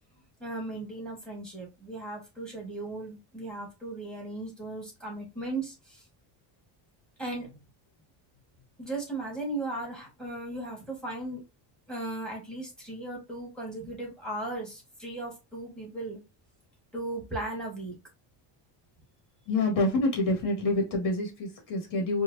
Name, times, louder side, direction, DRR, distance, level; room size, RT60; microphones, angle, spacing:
voice 1, 0.4-6.0 7.2-7.6 8.8-11.4 11.9-16.2 16.9-17.9, right 2 dB, ahead, -1 dB, 1.6 m, -37 dB
voice 2, 19.5-22.2, left 2 dB, 45° left, 0 dB, 1.9 m, -27 dB
4.7 x 2.3 x 2.7 m, 0.24 s
cardioid pair, 155°, 44 cm